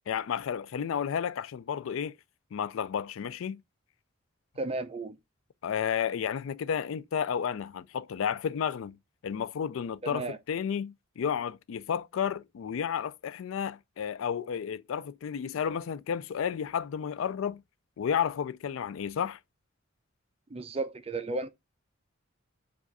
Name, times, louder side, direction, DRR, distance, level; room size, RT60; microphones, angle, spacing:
voice 1, 0.0-2.2 2.5-3.6 5.6-9.0 9.2-17.6 18.0-19.4, left 8 dB, 75° left, 0.3 m, -32 dB
voice 2, 4.6-5.2 10.0-10.4 20.5-21.5, right 3 dB, 30° right, 0.5 m, -34 dB
4.8 x 2.4 x 3.9 m
head